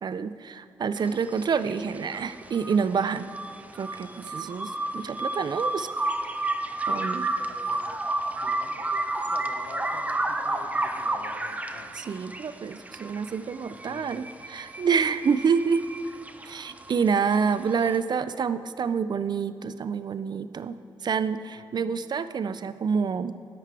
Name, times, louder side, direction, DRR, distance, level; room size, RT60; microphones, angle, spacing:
voice 1, 0.0-3.3 3.8-5.9 6.9-7.3 11.9-15.8 16.4-20.8 21.0-23.3, right 6 dB, 50° right, 13 dB, 0.4 m, -27 dB
sound 1, 1.0-18.0, right 2 dB, 15° right, 0.7 m, -32 dB
voice 2, 7.4-7.9 8.3-12.0 13.7-14.1 21.5-21.6, left 5 dB, 75° left, 7 dB, 0.8 m, -48 dB
10.5 x 7.6 x 4.6 m, 2.6 s
cardioid pair, 70°, 10 cm